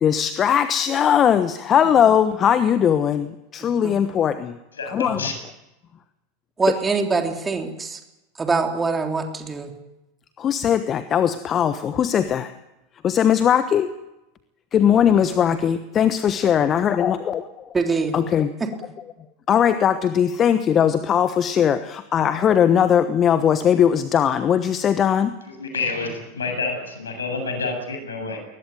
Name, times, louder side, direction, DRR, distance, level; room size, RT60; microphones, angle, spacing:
voice 1, 0.0-4.6 4.9-5.2 10.4-12.5 13.0-13.9 14.7-17.4 18.1-18.5 19.5-25.4, left 8 dB, 30° left, 12 dB, 1.1 m, -19 dB
voice 2, 3.6-4.0 6.6-8.0 8.4-9.7 17.7-18.2 18.6-18.7, right 4 dB, 15° right, 4 dB, 3.5 m, -24 dB
voice 3, 4.8-5.3 25.6-28.4, left 4 dB, 75° left, 5 dB, 7.7 m, -28 dB
21.5 x 20.0 x 9.3 m, 0.96 s
figure-of-eight pair, 85°, 0 cm